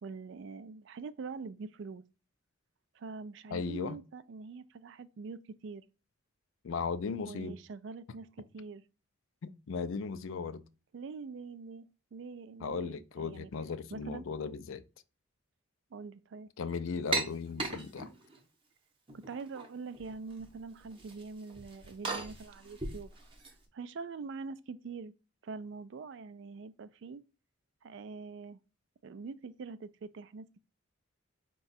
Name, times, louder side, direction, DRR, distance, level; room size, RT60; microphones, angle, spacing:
voice 1, 0.0-2.0 2.9-5.8 7.3-8.8 10.9-11.9 12.1-13.5 13.9-14.2 15.9-16.5 19.3-23.1 23.7-25.1 25.4-27.2 27.8-28.6 29.0-30.6, right 4 dB, 55° right, 0.3 m, -44 dB
voice 2, 3.5-4.0 6.6-7.6 9.4-10.6 12.6-14.8 16.6-18.1, left 5 dB, 65° left, 0.4 m, -36 dB
sound 1, 17.1-18.4 19.1-19.7 19.9-20.5 20.8-23.5, right 3 dB, 25° right, 0.7 m, -38 dB
4.8 x 2.3 x 4.0 m
head